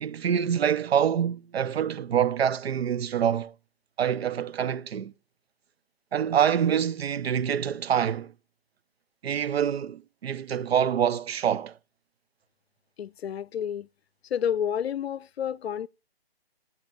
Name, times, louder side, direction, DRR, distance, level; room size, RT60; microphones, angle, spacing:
voice 1, 0.0-3.5 4.0-5.1 6.1-8.3 9.2-11.8, right 8 dB, 90° right, 0.5 m, -26 dB
voice 2, 13.0-13.9 14.3-15.9, left 9 dB, 85° left, 0.5 m, -30 dB
12.0 x 9.6 x 2.4 m
hypercardioid pair, 165°, 30 cm